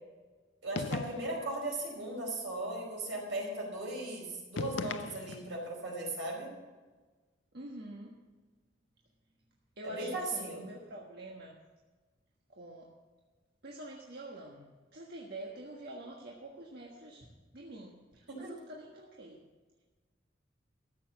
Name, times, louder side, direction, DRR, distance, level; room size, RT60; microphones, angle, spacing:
voice 1, 0.6-6.5 9.8-10.6 18.3-18.5, right 2 dB, 80° right, -1 dB, 4.8 m, -37 dB
sound 1, 0.7-1.5 4.5-5.6, left 4 dB, 75° left, 0.5 m, -38 dB
voice 2, 7.5-8.2 9.8-11.6 12.5-12.9 13.6-14.6 14.9-17.2 17.5-19.4, right 1 dB, 60° right, -2 dB, 1.5 m, -46 dB
14.0 x 7.5 x 7.2 m, 1.3 s
head